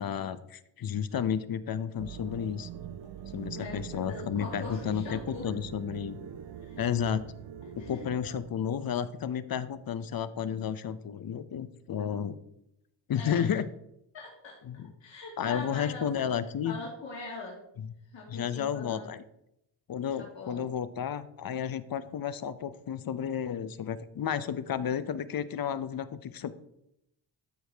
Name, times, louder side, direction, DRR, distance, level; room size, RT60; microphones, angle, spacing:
voice 1, 0.0-2.7 3.3-6.2 6.8-7.2 7.8-12.4 13.1-13.6 14.7-14.9 15.4-16.8 17.8-17.9 18.3-19.2 19.9-26.6, left 8 dB, 50° left, 14 dB, 0.7 m, -32 dB
sound 1, 2.0-8.5, right 9 dB, 65° right, 0.7 m, -43 dB
voice 2, 3.5-5.5 6.6-6.8 7.7-8.0 13.1-13.6 14.1-16.1 16.6-17.6 18.1-19.1 20.2-20.8, left 3 dB, 70° left, -4 dB, 2.2 m, -42 dB
13.0 x 4.7 x 3.4 m, 0.81 s
cardioid pair, 70°, 47 cm